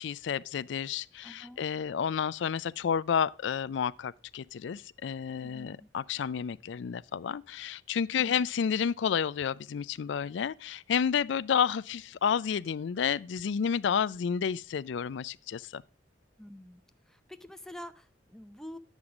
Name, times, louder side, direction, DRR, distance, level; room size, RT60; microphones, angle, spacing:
voice 1, 0.0-15.8, left 7 dB, 65° left, 0.4 m, -30 dB
voice 2, 1.2-1.6 5.4-5.9 8.2-8.4 16.4-16.8 17.1-18.8, left 1 dB, 5° left, 0.5 m, -47 dB
9.7 x 7.2 x 4.9 m
head